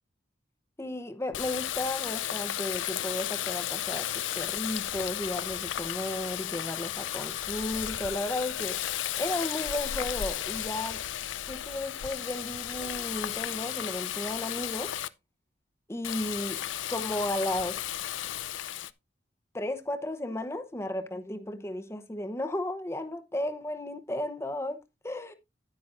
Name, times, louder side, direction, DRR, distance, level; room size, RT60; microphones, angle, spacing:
voice 1, 0.8-8.8 9.2-11.0 11.5-14.9 15.9-16.6 16.9-17.8 19.5-24.8 25.0-25.3, left 1 dB, 15° left, 0.8 m, -34 dB
Water tap faucet, 1.3-15.1 16.0-18.9, left 12 dB, 85° left, 0.5 m, -34 dB
10.0 x 9.7 x 2.5 m
head